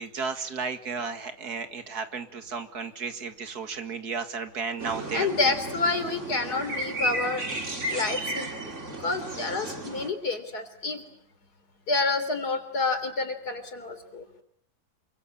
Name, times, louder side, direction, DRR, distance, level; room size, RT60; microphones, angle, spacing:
voice 1, 0.0-5.3, right 5 dB, 80° right, 9 dB, 2.5 m, -33 dB
sound 1, 4.8-10.1, right 1 dB, 50° right, 3.3 m, -33 dB
voice 2, 5.1-7.4 7.9-8.5 9.0-11.0 11.9-14.2, left 3 dB, 85° left, 9 dB, 4.1 m, -28 dB
28.0 x 23.5 x 8.6 m, 0.69 s
omnidirectional pair, 1.6 m